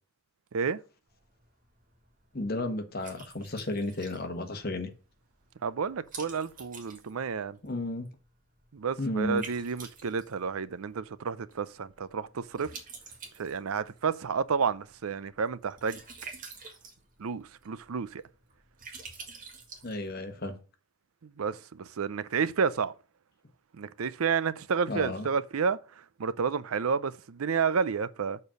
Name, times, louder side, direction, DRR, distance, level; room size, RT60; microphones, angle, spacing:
Liquid, 1.1-20.5, right 5 dB, 40° right, 1.8 m, -50 dB
voice 1, 2.3-4.9 7.6-8.1 9.0-9.5 19.8-20.6 24.9-25.3, left 2 dB, 45° left, 1.3 m, -33 dB
voice 2, 5.6-7.6 8.7-12.7 13.4-16.0 17.2-18.2 21.2-22.9 23.7-25.8 26.2-28.4, right 6 dB, 85° right, 0.5 m, -30 dB
7.0 x 4.4 x 6.3 m
head